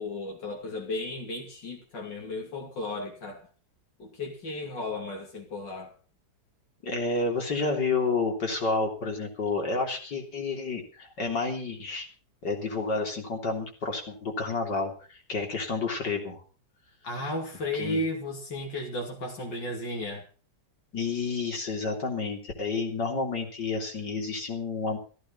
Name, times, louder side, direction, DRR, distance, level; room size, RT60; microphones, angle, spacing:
voice 1, 0.0-3.5 4.0-5.9 17.0-20.3, left 2 dB, 90° left, 0 dB, 3.3 m, -34 dB
voice 2, 6.8-12.1 12.4-16.4 17.7-18.0 20.9-25.0, left 3 dB, 75° left, 3 dB, 4.0 m, -30 dB
15.5 x 14.5 x 5.7 m, 0.38 s
omnidirectional pair, 1.9 m